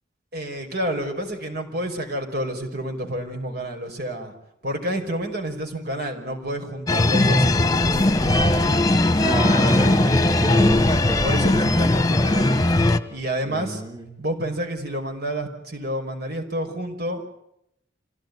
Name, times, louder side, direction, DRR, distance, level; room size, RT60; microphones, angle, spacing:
voice 1, 0.3-4.3 4.6-8.5 11.2-12.6 13.1-13.8 14.2-17.3, right 1 dB, 55° right, 3 dB, 5.4 m, -29 dB
sound 1, 6.9-13.0, left 2 dB, 20° left, 1.3 m, -19 dB
voice 2, 9.2-10.9 13.4-14.0, right 1 dB, 20° right, 1 dB, 2.9 m, -29 dB
26.5 x 17.5 x 9.6 m, 0.78 s
head